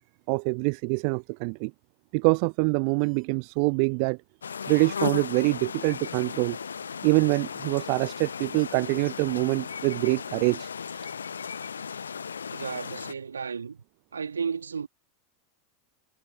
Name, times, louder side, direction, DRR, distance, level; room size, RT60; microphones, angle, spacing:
voice 1, 0.3-1.7 2.1-4.2 4.7-6.6 7.0-10.7 11.0-11.1, right 40 dB or more, 50° right, 0.4 m, -25 dB
sound 1, 3.0-3.2 4.7-5.0 6.5-6.7 8.0-11.8, right 11 dB, 30° right, 5.6 m, -66 dB
sound 2, 4.4-13.1, left 6 dB, 75° left, 0.8 m, -36 dB
voice 2, 12.5-13.8 14.1-14.9, right 6 dB, 75° right, 2.2 m, -33 dB
figure-of-eight pair, 85°, 0 cm